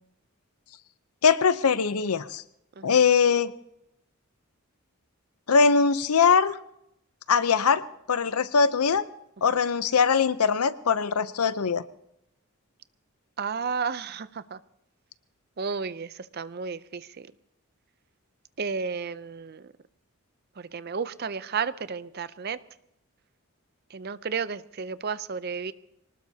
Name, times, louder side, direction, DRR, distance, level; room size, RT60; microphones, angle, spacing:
voice 1, 1.2-2.4 2.8-3.5 5.5-6.6 7.3-7.8 8.1-9.0 9.4-11.8, left 6 dB, 90° left, 14 dB, 0.7 m, -21 dB
voice 2, 13.4-14.6 15.6-17.3 18.6-19.6 20.6-22.6 23.9-25.7, right 5 dB, 45° right, 15 dB, 0.5 m, -32 dB
24.5 x 19.0 x 2.8 m, 0.82 s
head